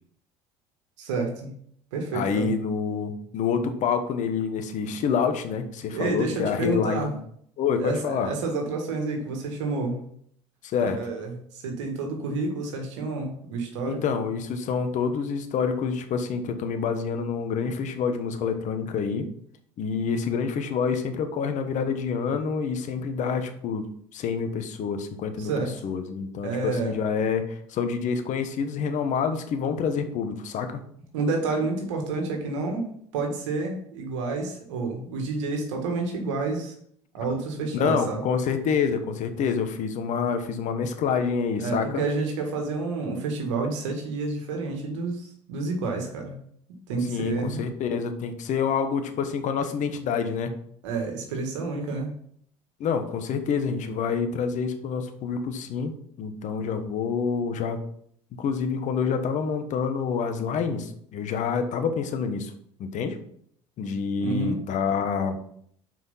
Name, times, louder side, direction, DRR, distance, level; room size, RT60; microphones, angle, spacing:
voice 1, 1.0-1.5 1.9-2.5 5.9-7.1 7.8-10.0 11.0-14.1 25.4-25.7 26.4-26.9 31.1-36.7 37.1-38.2 41.6-46.4 46.9-47.6 50.8-52.1 64.2-64.6, right 3 dB, 80° right, 2 dB, 1.8 m, -29 dB
voice 2, 2.1-7.1 7.6-8.3 10.6-11.0 13.8-19.3 19.8-23.9 24.1-25.5 25.8-30.8 37.7-42.0 47.1-50.6 52.8-57.8 58.3-62.5 62.8-63.2 63.8-65.4, left 6 dB, 55° left, 8 dB, 1.2 m, -27 dB
6.0 x 5.0 x 5.6 m, 0.66 s
hypercardioid pair, 70°, 15 cm